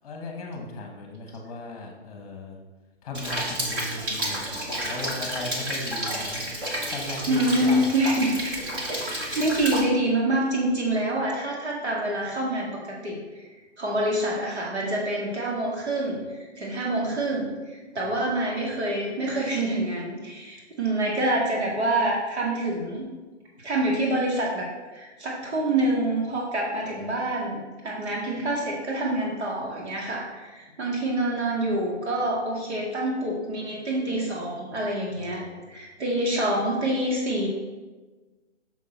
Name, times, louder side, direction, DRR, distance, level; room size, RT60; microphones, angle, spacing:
voice 1, 0.0-2.6 3.0-8.1 18.0-18.2 27.0-27.1 35.2-35.7, left 2 dB, 30° left, 2 dB, 1.3 m, -37 dB
Rain, 3.1-9.8, equal, 20° right, 1.0 m, -31 dB
voice 2, 7.3-8.3 9.1-13.2 13.8-23.1 23.6-35.4 35.7-37.5, right 1 dB, 65° right, -3 dB, 2.1 m, -26 dB
6.3 x 6.2 x 4.4 m, 1.2 s
hypercardioid pair, 160°, 36 cm